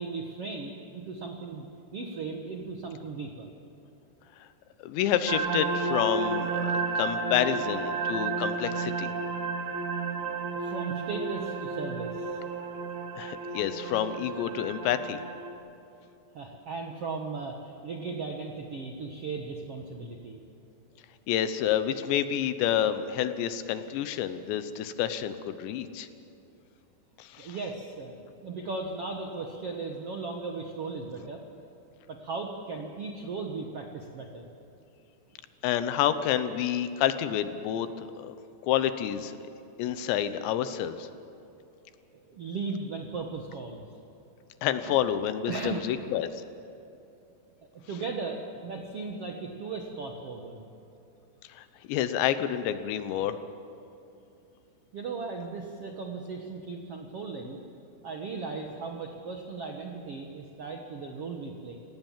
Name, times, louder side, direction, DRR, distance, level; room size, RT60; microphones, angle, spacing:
voice 1, 0.0-3.5 7.5-7.6 10.5-12.4 16.3-20.4 27.4-31.4 32.1-34.5 39.8-40.1 42.1-43.9 44.9-45.0 45.5-46.1 47.7-50.7 54.9-57.6 58.0-61.8, right 4 dB, 85° right, 2 dB, 1.3 m, -37 dB
voice 2, 4.8-9.1 13.2-15.2 21.3-26.1 27.2-27.6 35.6-37.9 38.2-38.3 38.6-39.4 39.8-41.1 44.6-46.3 51.6-53.4, left 10 dB, 85° left, 11 dB, 3.2 m, -29 dB
sound 1, 5.3-15.5, right 4 dB, 65° right, 3.2 m, -32 dB
28.5 x 18.0 x 7.4 m, 2.8 s
omnidirectional pair, 5.1 m